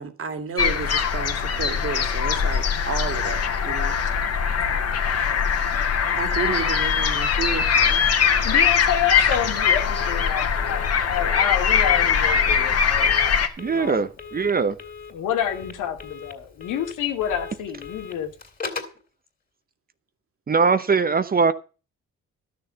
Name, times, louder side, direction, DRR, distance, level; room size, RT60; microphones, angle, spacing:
voice 1, 0.0-4.0 6.2-8.1, right 5 dB, 45° right, 2.3 m, -31 dB
sound 1, 0.6-13.5, left 7 dB, 55° left, 1.8 m, -21 dB
voice 2, 8.4-13.1 13.7-14.1 15.1-18.3, left 9 dB, 85° left, 2.1 m, -28 dB
Telephone, 9.1-19.0, left 5 dB, 30° left, 3.1 m, -39 dB
voice 3, 13.6-14.8 20.5-21.5, right 5 dB, 30° right, 0.8 m, -21 dB
12.5 x 6.8 x 6.8 m
cardioid pair, 90°, 30 cm